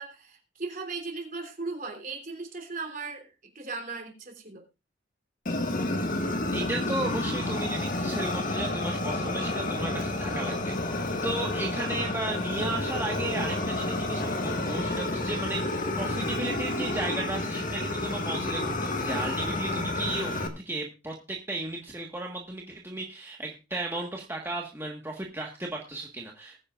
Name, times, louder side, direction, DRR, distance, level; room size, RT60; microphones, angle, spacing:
voice 1, 0.0-4.6, right 3 dB, 45° right, 3 dB, 3.2 m, -37 dB
Fire, 5.5-20.5, left 2 dB, 45° left, 1.6 m, -30 dB
voice 2, 6.5-26.6, right 2 dB, 10° right, -1 dB, 1.5 m, -34 dB
20.0 x 9.8 x 2.5 m, 0.27 s
head